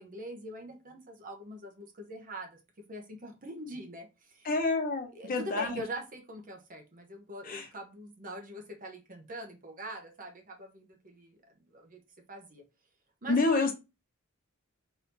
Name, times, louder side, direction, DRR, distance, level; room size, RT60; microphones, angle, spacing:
voice 1, 0.0-2.5 2.9-4.5 5.1-11.4 11.7-12.0 12.3-12.6 13.2-13.7, right 1 dB, 40° right, 4 dB, 1.0 m, -43 dB
voice 2, 4.4-5.8 7.5-7.7 13.3-13.7, left 3 dB, 40° left, 3 dB, 1.1 m, -28 dB
4.1 x 2.8 x 4.0 m, 0.26 s
head